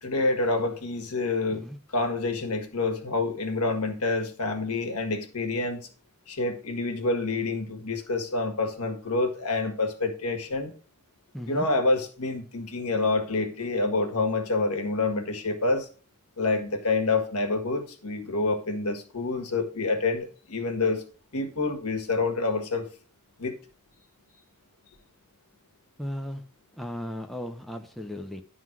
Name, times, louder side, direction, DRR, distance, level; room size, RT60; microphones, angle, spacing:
voice 1, 0.0-1.7 1.9-5.9 6.3-10.7 11.5-15.9 16.4-21.0 21.3-22.9 23.4-23.5, left 3 dB, 80° left, 1.7 m, -27 dB
voice 2, 11.3-11.7 26.0-26.4 26.7-28.4, equal, ahead, 0.7 m, -36 dB
11.0 x 3.9 x 6.0 m
head